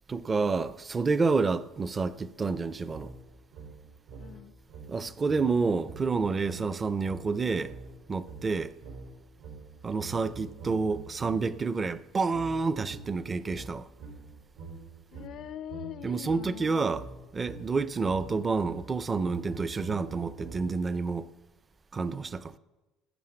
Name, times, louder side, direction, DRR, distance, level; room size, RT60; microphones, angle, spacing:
voice 1, 0.1-3.1 4.9-7.7 8.1-8.7 9.8-13.9 16.0-17.0 17.3-21.3 21.9-22.6, right 4 dB, 20° right, 0.5 m, -29 dB
sound 1, 2.9-11.6 12.3-20.9, right 4 dB, 80° right, 3.9 m, -46 dB
voice 2, 4.2-4.5 15.1-16.8, left 11 dB, 50° left, 0.4 m, -42 dB
13.0 x 9.1 x 7.7 m
cardioid pair, 150°, 0 cm